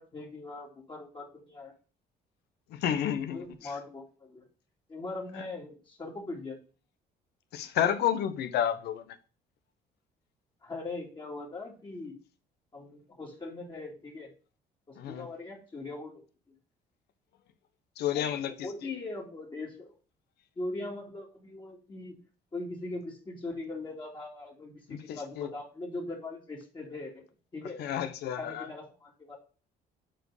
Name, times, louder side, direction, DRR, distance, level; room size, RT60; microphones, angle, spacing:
voice 1, 0.0-1.7 3.3-4.4 4.9-6.6 10.6-12.2 12.7-14.3 14.9-16.2 18.1-19.9 20.6-22.2 22.5-27.8 28.4-29.4, left 2 dB, 30° left, 2.5 m, -40 dB
voice 2, 2.7-3.7 7.5-9.2 15.0-15.3 18.0-18.9 24.9-25.5 27.8-28.7, left 10 dB, 75° left, 1.0 m, -31 dB
7.9 x 4.5 x 4.9 m
cardioid pair, 110°, 17 cm